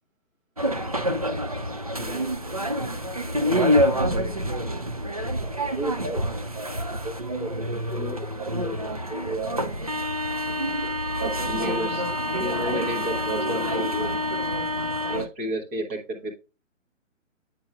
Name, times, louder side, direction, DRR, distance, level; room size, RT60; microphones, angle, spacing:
sound 1, 0.6-15.3, equal, 30° right, 0.4 m, -27 dB
voice 1, 2.0-2.3 3.6-4.5 5.8-6.2 6.5-6.8 7.0-7.5 7.9-8.7 9.1-9.5 11.2-12.0 12.3-14.2 15.1-16.3, right 1 dB, 10° right, 0 dB, 0.7 m, -32 dB
8.6 x 6.1 x 2.3 m, 0.31 s
figure-of-eight pair, 135°, 39 cm